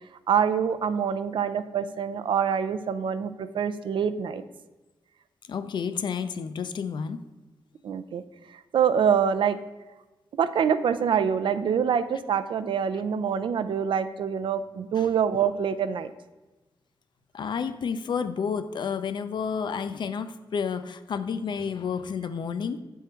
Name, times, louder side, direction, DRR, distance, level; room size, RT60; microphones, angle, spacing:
voice 1, 0.3-4.4 7.8-8.2 8.7-9.6 10.4-16.1, right 7 dB, 65° right, 11 dB, 0.4 m, -25 dB
voice 2, 5.5-7.2 15.0-15.1 17.3-22.8, left 6 dB, 60° left, 11 dB, 0.4 m, -30 dB
8.0 x 3.6 x 4.4 m, 1.1 s
wide cardioid pair, 105°, 9 cm